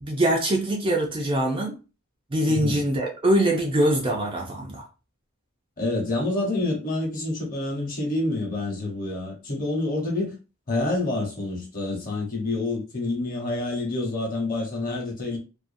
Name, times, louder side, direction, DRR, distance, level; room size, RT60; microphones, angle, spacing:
voice 1, 0.0-1.7 2.3-4.8, right 1 dB, 25° right, 0.4 m, -23 dB
voice 2, 2.5-2.8 5.8-10.4 10.7-15.4, left 2 dB, 40° left, 1.0 m, -27 dB
2.5 x 2.3 x 2.5 m
head